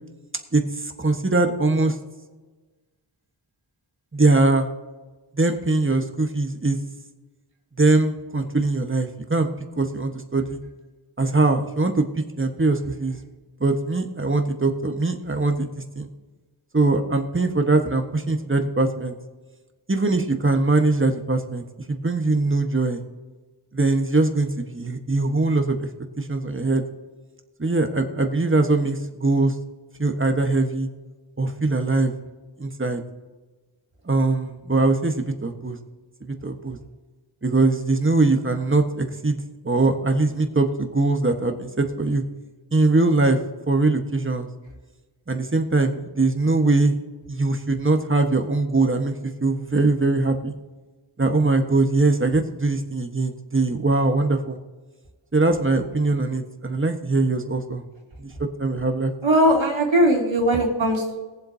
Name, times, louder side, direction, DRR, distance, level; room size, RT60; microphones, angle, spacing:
voice 1, 0.5-1.9 4.1-4.7 5.4-6.8 7.8-9.5 9.8-10.6 11.2-12.0 12.4-13.2 13.6-16.1 16.7-19.1 19.9-23.0 23.7-25.9 26.2-26.8 27.6-29.5 30.0-30.9 31.4-32.1 32.6-33.0 34.1-35.8 36.2-36.8 37.4-42.2 42.7-43.4 43.7-44.5 45.3-47.0 47.3-50.5 51.2-54.6 55.3-57.8 58.2-58.3 58.6-59.1, right 3 dB, 25° right, 5 dB, 1.3 m, -22 dB
voice 2, 59.2-61.2, right 1 dB, 85° right, -2 dB, 2.8 m, -19 dB
21.0 x 7.6 x 2.8 m, 1.3 s
wide cardioid pair, 60°, 45 cm